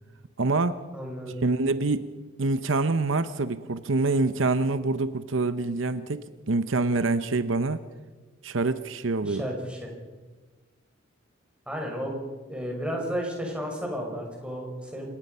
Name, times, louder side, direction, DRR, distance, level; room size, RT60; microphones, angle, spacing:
voice 1, 0.4-0.8 1.4-2.1 2.4-7.8 8.4-9.5, right 3 dB, 75° right, 12 dB, 0.8 m, -26 dB
voice 2, 0.9-1.3 9.2-9.9 11.7-12.2 12.5-15.1, equal, 5° right, 0 dB, 5.8 m, -33 dB
28.0 x 17.5 x 5.6 m, 1.3 s
head